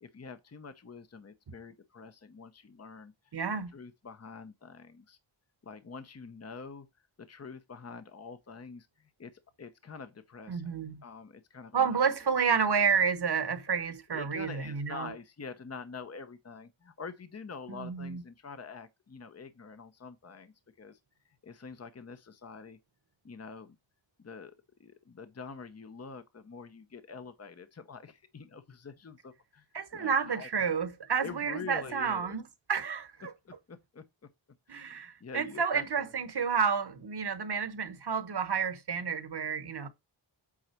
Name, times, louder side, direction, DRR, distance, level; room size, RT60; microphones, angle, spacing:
voice 1, 0.0-3.3 3.7-5.2 5.6-6.9 7.3-12.1 14.1-21.0 21.4-22.8 23.2-23.8 24.2-24.5 24.8-29.7 29.9-30.8 31.2-32.4 33.4-34.0 34.7-35.8, left 5 dB, 35° left, 0.9 m, -46 dB
voice 2, 3.3-3.7 10.5-11.0 11.7-15.1 17.7-18.2 29.7-33.3 34.7-39.9, right 6 dB, 55° right, 1.2 m, -30 dB
8.7 x 3.9 x 4.5 m
wide cardioid pair, 110°, 46 cm